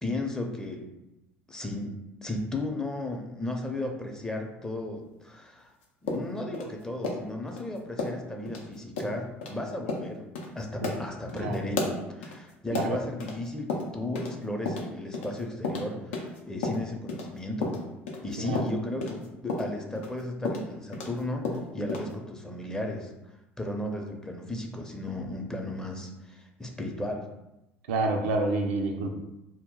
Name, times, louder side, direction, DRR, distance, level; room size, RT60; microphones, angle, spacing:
voice 1, 0.0-0.9 1.5-1.9 2.2-5.7 6.0-10.2 10.5-17.8 18.2-27.3, left 1 dB, 10° left, 2 dB, 0.5 m, -35 dB
sound 1, 6.1-7.6 8.0-8.2 8.5-8.6 9.0-9.1 9.4-9.5 9.9-10.1 10.4-10.5 10.8-13.4 13.7-14.4 14.7-17.3 17.6-21.2 21.4-22.1, left 3 dB, 80° left, 0.5 m, -33 dB
voice 2, 27.9-29.1, right 2 dB, 80° right, 3 dB, 0.4 m, -28 dB
2.2 x 2.0 x 3.7 m, 0.94 s
hypercardioid pair, 65°, 6 cm